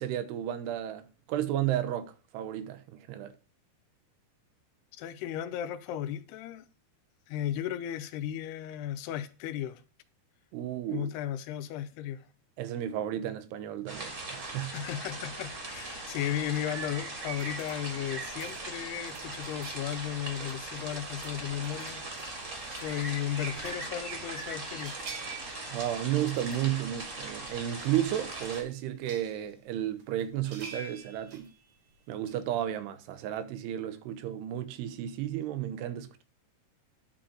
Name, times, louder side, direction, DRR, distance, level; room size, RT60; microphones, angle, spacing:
voice 1, 0.0-3.3 10.5-11.1 12.6-14.9 25.7-31.5 32.1-36.2, right 11 dB, 90° right, 2.9 m, -33 dB
voice 2, 4.9-6.6 7.3-9.8 10.9-12.2 14.7-25.0, left 11 dB, 85° left, 2.7 m, -35 dB
sound 1, 13.9-28.6, right 2 dB, 40° right, 1.2 m, -40 dB
sound 2, 17.3-24.4 24.7-26.7 27.0-27.1 27.5-28.0 28.3-29.6 30.0-32.4, right 3 dB, 65° right, 1.4 m, -50 dB
9.9 x 3.9 x 6.1 m
omnidirectional pair, 4.7 m